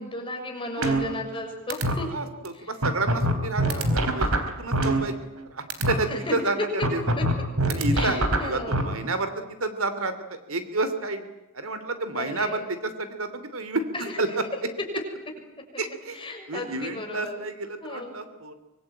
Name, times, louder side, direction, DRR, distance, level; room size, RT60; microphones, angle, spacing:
voice 1, 0.0-2.1 2.5-2.7 3.6-4.1 6.0-6.7 7.2-7.3 7.9-8.8 12.2-12.6 13.9-14.2 15.7-15.8 16.1-17.3 17.8-18.1, left 2 dB, 25° left, 1 dB, 6.9 m, -34 dB
voice 2, 0.7-1.0 2.1-4.3 4.6-5.2 5.5-7.0 7.7-10.1 10.5-13.9 14.2-14.4 15.8-18.5, right 2 dB, 70° right, 11 dB, 3.0 m, -30 dB
sound 1, 0.8-1.4 1.7-1.9 2.4-2.5 2.8-5.4 5.7-5.9 6.8-8.8, right 1 dB, 90° right, 3.9 m, -23 dB
25.0 x 23.5 x 9.0 m, 1.0 s
head